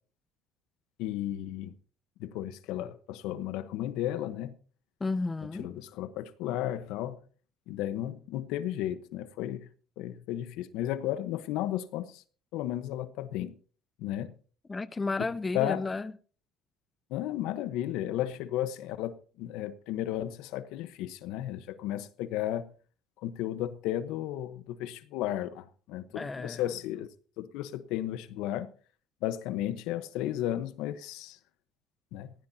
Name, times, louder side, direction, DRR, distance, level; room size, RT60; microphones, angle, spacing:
voice 1, 1.0-1.7 2.2-4.5 5.6-7.2 7.7-9.7 10.0-12.2 12.5-13.6 14.0-14.3 15.2-15.3 15.5-15.8 17.1-22.7 23.2-28.7 29.2-31.4 32.1-32.3, left 12 dB, 80° left, 1.1 m, -34 dB
voice 2, 5.0-5.7 14.7-16.1 26.1-26.6, left 3 dB, 20° left, 0.6 m, -32 dB
19.0 x 16.0 x 2.8 m
cardioid pair, 105°, 0 cm